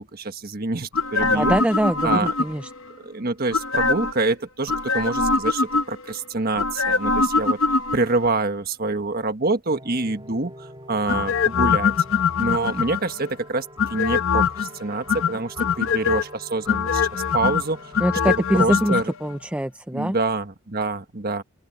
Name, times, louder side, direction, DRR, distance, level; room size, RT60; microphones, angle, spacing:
voice 1, 0.0-1.5 2.0-2.3 3.0-7.6 7.9-11.9 12.4-17.9 18.5-19.1 19.9-21.4, right 3 dB, 45° right, 1.4 m, -26 dB
sound 1, 0.9-2.8 3.5-4.2 4.7-6.1 6.6-8.3 11.1-13.2 13.8-14.7 15.1-16.2 16.7-19.0 19.3-19.4, left 5 dB, 65° left, 0.9 m, -23 dB
voice 2, 1.2-2.7 18.0-19.0 19.2-20.2, right 1 dB, 5° right, 0.4 m, -23 dB
sound 2, 9.7-18.5, equal, 20° right, 2.2 m, -45 dB
open air
head